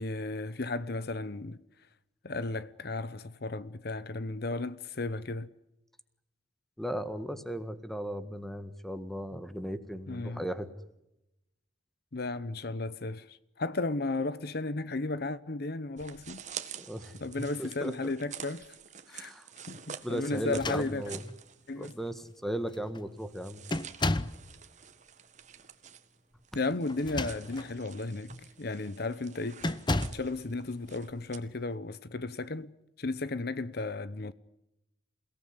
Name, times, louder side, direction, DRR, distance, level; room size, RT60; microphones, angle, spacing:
voice 1, 0.0-1.6 2.2-5.5 10.1-10.4 12.1-16.4 17.2-18.8 19.1-19.3 19.7-21.0 21.7-21.9 26.5-28.3 28.6-29.6 30.1-32.7 33.0-34.3, left 2 dB, 55° left, 0.9 m, -34 dB
voice 2, 6.8-10.7 16.9-18.1 19.1-19.5 20.0-21.2 21.7-23.6, equal, ahead, 1.6 m, -37 dB
sound 1, 16.0-22.1 22.4-22.5 23.1-31.4, right 8 dB, 40° right, 1.8 m, -48 dB
sound 2, 20.4-21.4 22.2-22.3 22.7-23.0 23.7-24.5 26.9-27.7 28.3-28.5 29.6-30.3, left 2 dB, 25° left, 0.9 m, -33 dB
28.5 x 18.0 x 9.7 m
head